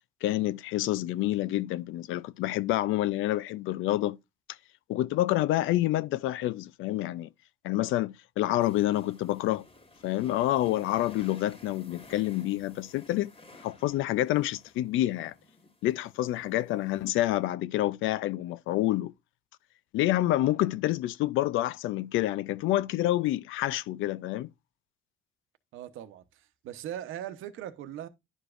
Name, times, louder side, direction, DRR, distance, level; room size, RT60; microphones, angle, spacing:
voice 1, 0.2-4.2 4.9-7.3 7.6-9.7 10.0-13.3 13.6-15.3 15.8-19.1 19.9-24.5, left 15 dB, 90° left, 0.5 m, -28 dB
sound 1, 8.6-17.4, left 2 dB, 30° left, 1.7 m, -54 dB
voice 2, 25.7-28.1, right 11 dB, 90° right, 0.9 m, -40 dB
11.0 x 4.9 x 2.5 m
cardioid pair, 90°, 20 cm